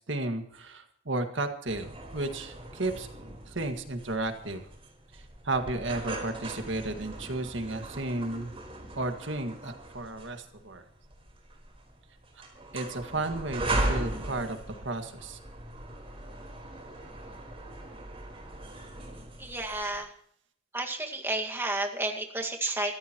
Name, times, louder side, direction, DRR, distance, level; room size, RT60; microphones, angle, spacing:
voice 1, 0.0-3.1 3.5-4.6 5.4-8.5 9.0-10.8 12.7-15.4, right 2 dB, 70° right, 7 dB, 1.9 m, -33 dB
sound 1, 1.7-20.0, right 1 dB, 30° right, 4.3 m, -38 dB
voice 2, 19.4-20.1 20.7-22.9, right 2 dB, 10° right, 2 dB, 1.8 m, -31 dB
25.0 x 14.5 x 3.0 m, 0.67 s
head